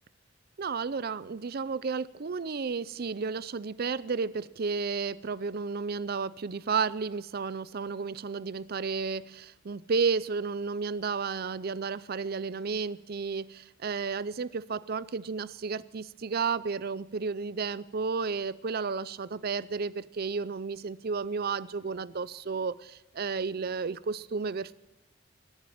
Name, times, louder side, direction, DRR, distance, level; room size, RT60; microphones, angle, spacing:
voice 1, 0.6-24.7, right 5 dB, 50° right, 18 dB, 0.5 m, -32 dB
21.5 x 7.4 x 8.7 m, 1.0 s
head